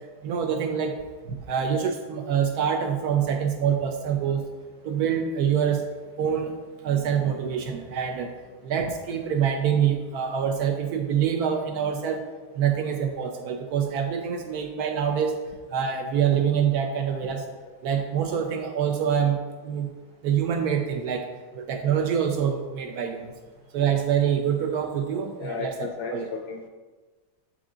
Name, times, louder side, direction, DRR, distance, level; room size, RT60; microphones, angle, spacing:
voice 1, 0.2-0.9 1.3-4.5 4.8-5.9 6.2-6.5 6.8-8.3 8.6-12.2 12.6-15.4 15.7-17.4 17.8-19.9 20.2-21.2 21.6-23.3 23.7-26.3, right 8 dB, 80° right, 5 dB, 0.8 m, -25 dB
voice 2, 25.4-26.7, left 5 dB, 70° left, 3 dB, 0.9 m, -34 dB
7.7 x 4.9 x 3.8 m, 1.3 s
omnidirectional pair, 2.2 m